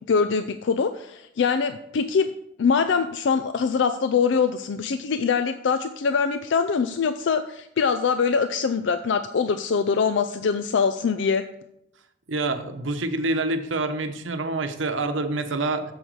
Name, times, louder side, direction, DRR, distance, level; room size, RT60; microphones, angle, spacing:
voice 1, 0.1-2.3 2.6-11.4, left 5 dB, 70° left, 10 dB, 0.4 m, -23 dB
voice 2, 12.3-15.8, right 2 dB, 80° right, 7 dB, 1.0 m, -26 dB
8.0 x 7.3 x 4.7 m, 0.80 s
head